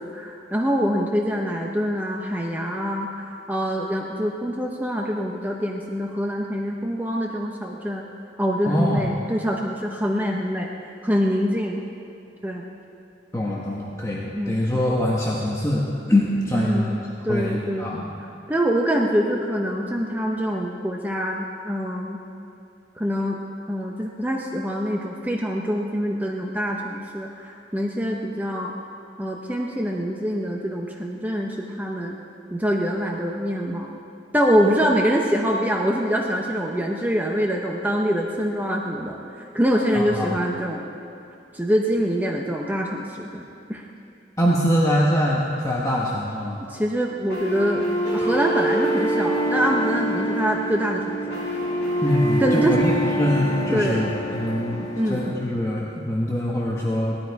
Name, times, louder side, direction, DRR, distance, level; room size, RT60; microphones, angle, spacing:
voice 1, 0.0-8.0 8.4-10.7 11.0-11.8 12.4-12.6 14.3-14.6 16.5-18.0 18.5-22.2 23.0-23.4 23.7-28.7 29.2-32.1 32.5-34.0 34.3-39.2 39.5-40.8 41.5-43.8 46.7-51.4 52.4-52.7 53.7-54.0 55.0-55.2, equal, 10° right, 0 dB, 0.8 m, -25 dB
voice 2, 8.7-9.1 13.3-16.9 17.3-18.1 39.9-40.3 44.4-46.6 52.0-57.2, equal, 15° left, -4 dB, 1.1 m, -23 dB
sound 1, 47.3-55.3, right 1 dB, 60° left, 4.3 m, -25 dB
18.0 x 12.5 x 4.7 m, 2.5 s
head